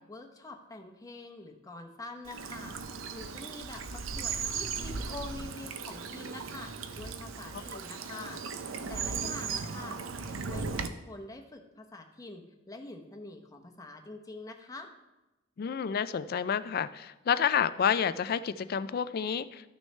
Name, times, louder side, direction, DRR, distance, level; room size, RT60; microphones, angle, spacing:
voice 1, 0.1-2.8 3.1-14.9, left 2 dB, 20° left, 3 dB, 0.8 m, -46 dB
Bird vocalization bird call bird song / Stream, 2.3-10.9, right 5 dB, 85° right, 0.6 m, -37 dB
voice 2, 15.6-19.7, left 7 dB, 50° left, 14 dB, 0.3 m, -29 dB
13.0 x 6.3 x 3.2 m, 1.0 s
head